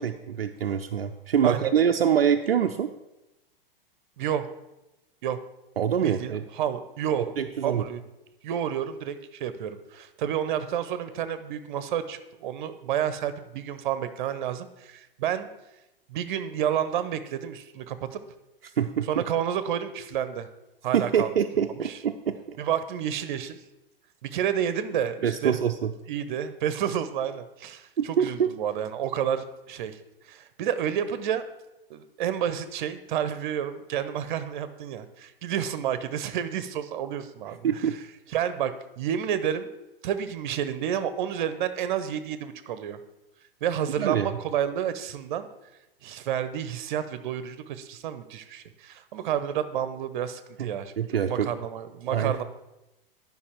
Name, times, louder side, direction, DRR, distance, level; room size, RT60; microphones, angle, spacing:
voice 1, 0.0-2.9 5.8-6.4 7.4-7.8 18.8-19.2 20.9-22.6 25.2-25.9 28.0-28.5 37.6-37.9 44.0-44.3 50.6-50.7 51.0-51.5 52.1-52.4, right 8 dB, 80° right, 6 dB, 0.6 m, -25 dB
voice 2, 4.2-4.5 5.2-5.4 6.0-7.4 7.6-8.0 8.4-15.5 16.1-18.2 19.1-20.5 20.8-21.3 21.7-22.0 22.6-23.6 24.2-25.6 26.1-30.0 30.2-31.5 31.9-37.8 38.3-39.7 40.0-43.0 43.6-45.5 46.0-52.4, right 9 dB, 55° right, 12 dB, 0.9 m, -30 dB
11.0 x 5.4 x 4.5 m, 0.95 s
figure-of-eight pair, 105°, 29 cm